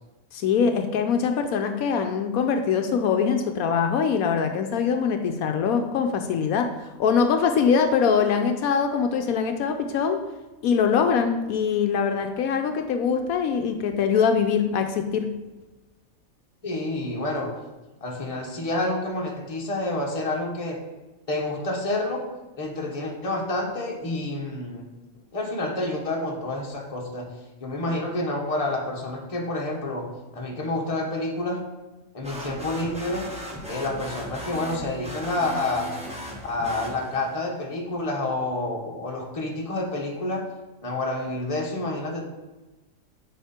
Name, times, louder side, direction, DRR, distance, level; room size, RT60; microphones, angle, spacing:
voice 1, 0.3-6.7 7.0-10.2 10.6-15.3, left 6 dB, 80° left, 5 dB, 1.0 m, -23 dB
voice 2, 16.6-17.5 18.0-20.8 21.3-22.3 22.6-24.9 25.3-27.3 27.6-31.6 32.1-33.3 33.7-35.9 36.4-40.5 40.8-42.2, left 2 dB, 25° left, -1 dB, 1.2 m, -28 dB
sound 1, 32.2-37.4, equal, 5° right, 1.0 m, -37 dB
9.2 x 4.4 x 4.3 m, 1.1 s
omnidirectional pair, 1.5 m